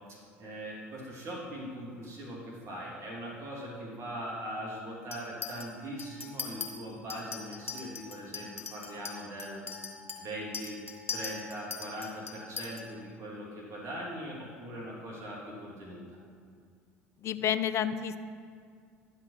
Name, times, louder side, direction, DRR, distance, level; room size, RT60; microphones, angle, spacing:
voice 1, 0.1-9.6 10.2-10.8 11.1-16.2, equal, 40° right, -4 dB, 2.9 m, -41 dB
Chink clink, 5.1-5.7 6.0-6.7 7.1-12.8, left 5 dB, 85° left, 0.9 m, -40 dB
voice 2, 17.2-18.2, left 9 dB, 40° left, 12 dB, 0.6 m, -30 dB
11.0 x 5.9 x 5.7 m, 2.2 s
figure-of-eight pair, 65°, 7 cm